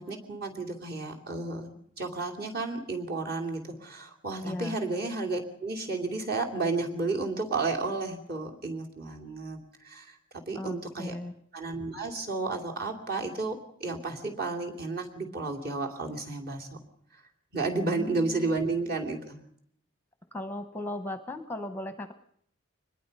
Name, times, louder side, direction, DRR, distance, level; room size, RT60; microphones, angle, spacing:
voice 1, 0.0-1.7 2.0-10.2 10.5-11.2 11.5-16.7 17.5-19.4, right 3 dB, 45° right, 2 dB, 2.9 m, -32 dB
voice 2, 4.4-4.8 10.5-11.3 17.8-18.6 20.3-22.1, left 1 dB, 10° left, 9 dB, 0.8 m, -37 dB
24.0 x 20.5 x 5.4 m, 0.68 s
head